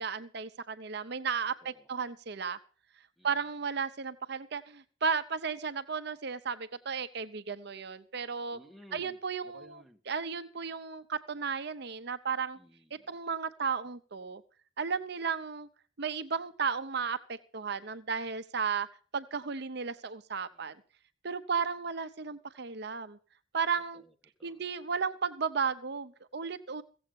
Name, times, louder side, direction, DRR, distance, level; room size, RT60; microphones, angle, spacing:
voice 1, 0.0-2.6 3.2-8.6 8.9-12.6 13.1-14.4 14.8-15.7 16.0-18.9 19.1-20.8 21.2-23.2 23.5-24.0 24.4-26.8, right 6 dB, 60° right, 10 dB, 0.8 m, -34 dB
voice 2, 8.5-9.2 9.4-10.0 12.5-13.2 20.5-20.8 23.9-24.6, equal, ahead, 5 dB, 1.7 m, -56 dB
16.0 x 7.9 x 7.1 m, 0.39 s
head